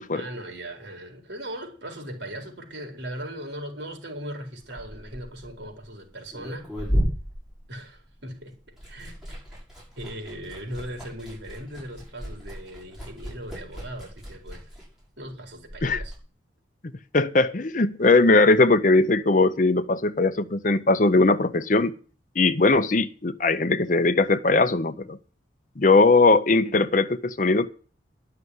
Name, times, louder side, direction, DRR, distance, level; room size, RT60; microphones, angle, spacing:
voice 1, 0.1-6.7 7.7-8.5 8.9-9.4 10.0-14.7 15.2-16.2, right 1 dB, 70° right, 4.2 m, -38 dB
Liquid, 4.6-8.3 8.6-16.2, equal, 5° right, 6.8 m, -34 dB
voice 2, 17.1-21.9 22.4-25.2 25.8-27.7, left 3 dB, 45° left, 0.7 m, -20 dB
11.5 x 6.7 x 9.5 m
head